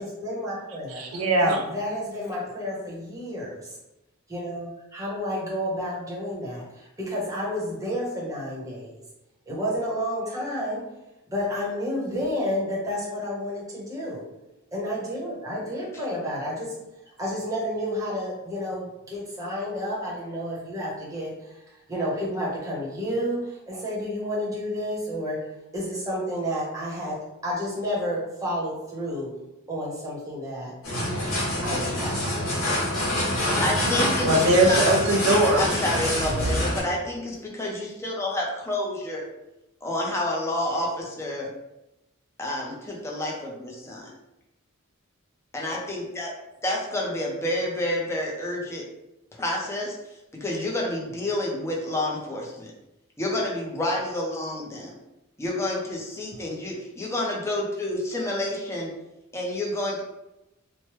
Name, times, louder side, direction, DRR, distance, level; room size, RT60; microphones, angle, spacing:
voice 1, 0.0-1.0 1.4-3.8 4.3-9.0 9.5-10.8 11.3-14.2 14.7-16.8 17.2-21.5 21.9-29.3 29.7-30.7 31.6-32.7, equal, 15° right, -6 dB, 0.8 m, -30 dB
voice 2, 0.9-1.6 34.2-35.7, right 1 dB, 80° right, 1 dB, 0.5 m, -21 dB
sound 1, 30.8-36.8, left 1 dB, 70° left, 1.3 m, -26 dB
voice 3, 33.6-34.3 34.7-34.9 35.6-39.2 39.8-41.5 42.4-44.1 45.5-46.3 46.6-48.9 49.3-50.0 50.3-52.7 53.2-54.9 55.4-58.9 59.3-60.0, left 1 dB, 15° left, -2 dB, 0.5 m, -29 dB
3.1 x 2.1 x 3.0 m, 0.94 s
head